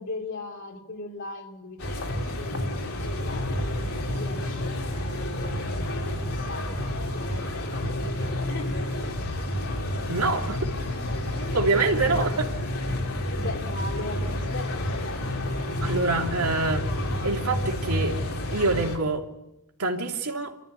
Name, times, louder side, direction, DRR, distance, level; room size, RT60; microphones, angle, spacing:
voice 1, 0.0-9.5 12.1-12.3 13.4-15.4, left 2 dB, 55° left, 3.0 m, -40 dB
sound 1, 1.8-19.0, left 1 dB, 75° left, 3.3 m, -29 dB
voice 2, 10.1-10.6 11.5-12.5 15.8-18.1 18.5-19.3 19.8-20.5, right 3 dB, 90° right, 2.9 m, -26 dB
28.5 x 13.5 x 8.3 m
head